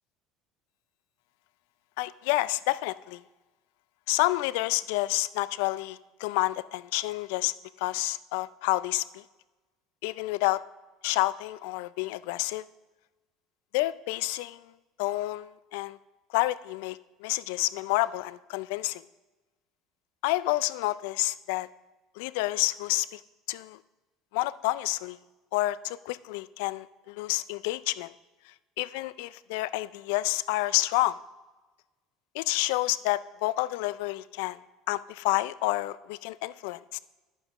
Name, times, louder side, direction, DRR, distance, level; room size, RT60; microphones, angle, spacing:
voice 1, 2.0-3.2 4.1-9.2 10.0-10.6 11.0-12.6 13.7-14.6 15.0-16.0 16.3-19.0 20.2-21.7 22.2-23.2 23.5-23.8 24.3-25.2 25.5-28.1 28.8-31.2 32.3-34.6 34.9-37.0, left 18 dB, 75° left, 18 dB, 0.3 m, -29 dB
10.5 x 9.0 x 3.0 m, 1.2 s
hypercardioid pair, 85°, 0 cm